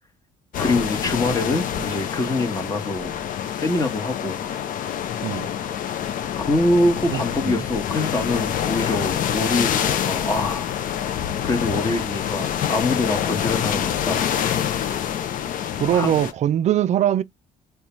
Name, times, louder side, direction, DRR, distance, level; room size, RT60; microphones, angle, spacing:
sound 1, 0.5-16.3, left 9 dB, 55° left, 0.5 m, -26 dB
voice 1, 0.6-3.1 3.5-4.4 6.4-10.7 11.4-14.3 15.9-16.1, left 2 dB, 20° left, 1.1 m, -24 dB
voice 2, 7.1-7.6 15.8-17.2, right 11 dB, 45° right, 0.4 m, -22 dB
3.9 x 2.2 x 3.0 m
cardioid pair, 110°, 17 cm